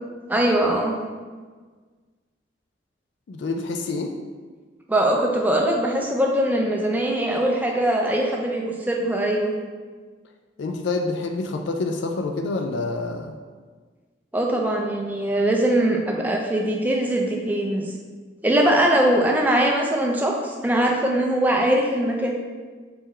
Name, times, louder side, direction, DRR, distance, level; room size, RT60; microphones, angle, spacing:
voice 1, 0.3-0.9 4.9-9.5 14.3-17.9 18.4-22.3, right 1 dB, 10° right, 0 dB, 0.4 m, -21 dB
voice 2, 3.3-4.1 10.6-13.3, left 3 dB, 65° left, 4 dB, 0.3 m, -27 dB
4.3 x 3.7 x 3.2 m, 1.5 s
head